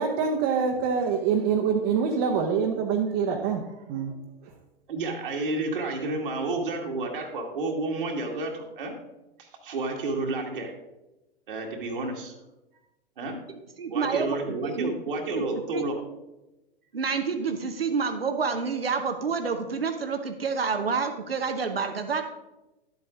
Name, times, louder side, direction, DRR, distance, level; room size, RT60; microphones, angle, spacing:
voice 1, 0.0-4.1 4.4-4.5, right 6 dB, 35° right, 1 dB, 1.0 m, -25 dB
voice 2, 4.9-9.0 9.4-10.7 11.5-12.3 13.2-13.4 13.9-16.0, right 2 dB, 60° right, 0 dB, 1.7 m, -30 dB
voice 3, 13.5-14.9 15.3-15.4 15.7-15.8 16.9-22.2, right 5 dB, 75° right, 7 dB, 1.0 m, -28 dB
11.5 x 8.1 x 3.7 m, 0.99 s
figure-of-eight pair, 100°, 30 cm